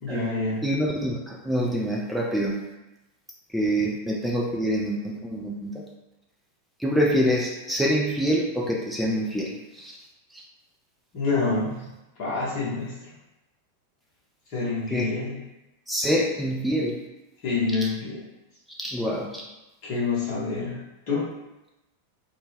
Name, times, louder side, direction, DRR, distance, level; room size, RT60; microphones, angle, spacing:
voice 1, 0.0-0.6 11.1-11.8 12.2-13.2 14.5-15.4 17.4-18.2 19.8-21.3, left 4 dB, 45° left, -8 dB, 0.8 m, -27 dB
voice 2, 0.6-2.6 3.5-5.7 6.8-10.0 14.9-15.0 15.9-17.0 18.8-19.4, equal, ahead, -2 dB, 0.3 m, -26 dB
2.1 x 2.0 x 3.1 m, 0.97 s
figure-of-eight pair, 90°, 0 cm